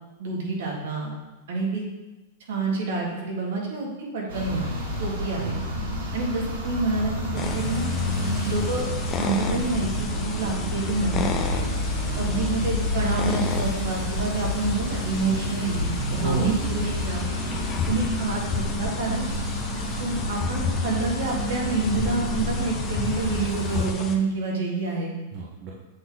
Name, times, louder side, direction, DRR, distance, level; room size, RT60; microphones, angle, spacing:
voice 1, 0.2-1.2 1.5-1.8 2.5-5.6 6.1-7.9 8.5-8.9 9.2-11.7 12.2-17.3 17.9-19.2 20.0-25.1, right 3 dB, 70° right, -2 dB, 1.9 m, -28 dB
sound 1, 4.3-23.9, left 1 dB, 85° right, 2.0 m, -30 dB
sound 2, 4.8-5.7 6.0-6.6 7.1-7.2 8.0-23.1, equal, 45° left, 1.5 m, -36 dB
voice 2, 5.4-6.1 16.2-16.5 17.4-17.7 25.3-25.7, right 5 dB, 35° right, -3 dB, 0.8 m, -32 dB
sound 3, 7.4-24.2, left 6 dB, 20° left, 0.5 m, -33 dB
7.7 x 3.7 x 4.0 m, 1.1 s
supercardioid pair, 160°, 0 cm